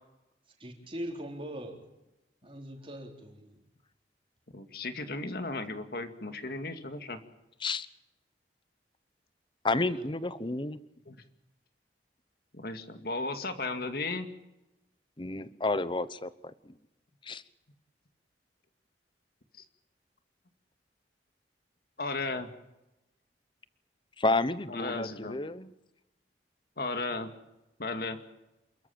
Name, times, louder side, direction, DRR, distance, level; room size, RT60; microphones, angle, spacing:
voice 1, 0.6-1.8 2.4-3.6 9.8-10.0, equal, 30° right, 4.0 m, -41 dB
voice 2, 4.5-7.2 11.1-11.2 12.5-14.3 22.0-22.5 24.7-25.4 26.8-27.3 27.8-28.2, left 3 dB, 60° left, 2.2 m, -35 dB
voice 3, 9.6-10.8 15.2-16.7 17.2-17.4 24.2-25.7, left 2 dB, 30° left, 0.9 m, -31 dB
28.5 x 14.0 x 8.8 m
head